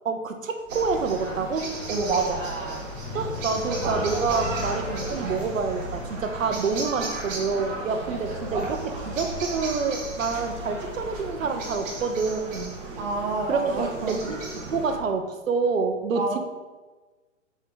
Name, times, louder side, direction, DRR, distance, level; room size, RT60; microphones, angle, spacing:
voice 1, 0.0-1.8 3.1-12.8 13.5-16.4, right 4 dB, 90° right, 7 dB, 1.0 m, -27 dB
sound 1, 0.6-5.8, equal, 5° right, 0.3 m, -40 dB
sound 2, 0.7-15.0, right 2 dB, 45° right, 1.8 m, -34 dB
voice 2, 1.9-2.4 13.0-14.2 16.1-16.4, right 3 dB, 60° right, 0 dB, 1.8 m, -27 dB
sound 3, 2.9-8.4, left 8 dB, 25° left, 1.6 m, -43 dB
6.5 x 4.8 x 3.9 m, 1.2 s
hypercardioid pair, 135°, 38 cm